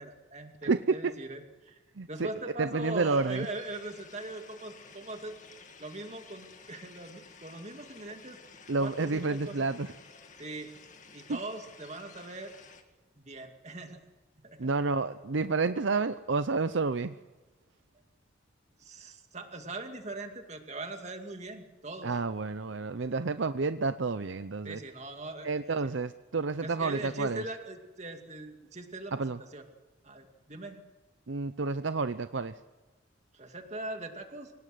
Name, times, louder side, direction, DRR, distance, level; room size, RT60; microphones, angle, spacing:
voice 1, 0.0-1.8 2.1-5.3 5.8-8.4 8.8-9.7 10.4-10.7 11.1-12.5 13.2-14.0 14.4-14.7 18.8-22.1 24.6-25.9 26.6-29.1 29.4-29.6 30.0-30.8 33.3-34.5, right 2 dB, 35° right, 5 dB, 2.4 m, -41 dB
voice 2, 0.6-1.1 2.0-2.3 2.6-3.5 8.7-9.9 11.3-11.4 14.6-17.2 22.0-24.8 25.4-27.4 29.1-29.4 31.3-32.6, right 4 dB, 65° right, 12 dB, 0.7 m, -30 dB
sound 1, 2.9-12.8, left 5 dB, 40° left, 2.2 m, -53 dB
25.0 x 18.5 x 7.9 m, 1.2 s
head